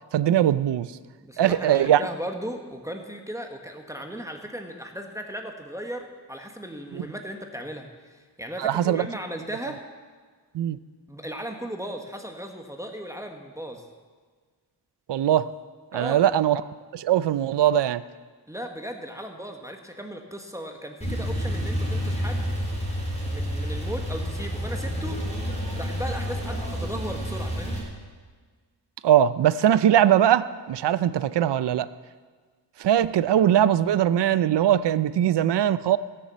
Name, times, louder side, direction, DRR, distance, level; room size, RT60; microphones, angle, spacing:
voice 1, 0.1-0.9 1.4-2.0 6.9-7.1 8.6-9.1 10.5-10.8 15.1-15.5 15.9-16.6 16.9-18.0 29.0-31.9 32.8-36.0, right 11 dB, 75° right, 15 dB, 0.6 m, -21 dB
voice 2, 1.2-9.8 11.1-13.9 15.9-16.2 18.5-22.5 23.3-25.2 25.8-27.8, equal, 5° right, 3 dB, 1.2 m, -36 dB
Male speech man speaking / Car / Idling, 21.0-27.8, equal, 15° left, 4.2 m, -29 dB
16.0 x 6.9 x 7.5 m, 1.5 s
wide cardioid pair, 100°, 42 cm